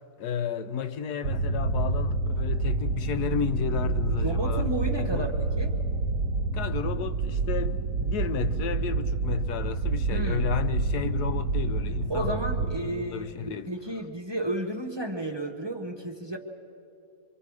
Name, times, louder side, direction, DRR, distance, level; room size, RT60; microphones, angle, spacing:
voice 1, 0.2-4.7 5.0-5.2 6.5-12.4 12.9-13.7, left 7 dB, 85° left, 1.2 m, -32 dB
sound 1, 1.2-12.8, right 3 dB, 75° right, 1.1 m, -28 dB
voice 2, 4.2-5.7 10.1-10.5 12.1-16.4, right 1 dB, 20° right, 1.0 m, -32 dB
25.0 x 24.0 x 4.8 m
omnidirectional pair, 1.6 m